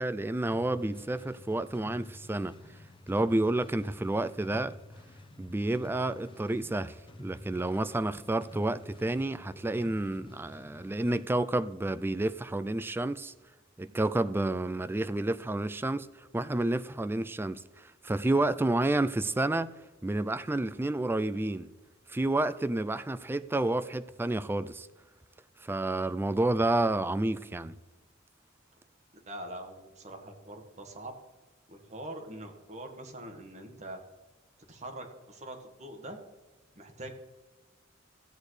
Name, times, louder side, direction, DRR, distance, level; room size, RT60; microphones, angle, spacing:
voice 1, 0.0-2.5 3.1-4.7 5.4-13.3 13.8-16.1 16.3-19.7 20.0-21.7 22.1-24.9 25.6-27.8, right 2 dB, 10° right, 0.3 m, -30 dB
sound 1, 0.5-11.3, left 1 dB, 25° left, 1.0 m, -50 dB
voice 2, 29.3-31.1 31.7-34.0 34.7-36.2 36.8-37.2, right 1 dB, 35° right, 1.6 m, -43 dB
15.0 x 8.5 x 3.3 m
head